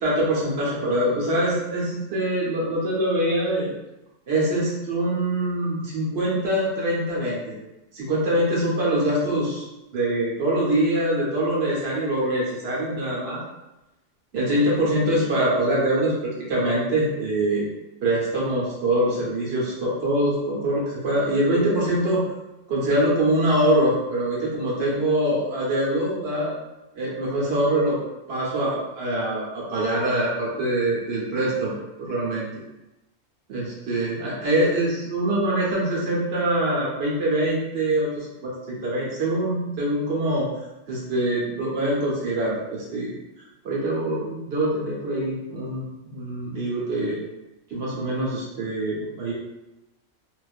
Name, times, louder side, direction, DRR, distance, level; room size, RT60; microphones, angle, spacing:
voice 1, 0.0-3.7 4.3-7.6 7.9-9.7 9.9-13.4 14.3-17.6 18.0-22.2 22.7-26.5 26.9-28.0 28.3-31.7 32.0-32.5 33.5-40.5 40.9-43.2 43.6-47.2 47.7-49.3, right 1 dB, 55° right, -5 dB, 0.9 m, -24 dB
2.4 x 2.3 x 2.4 m, 0.98 s
omnidirectional pair, 1.4 m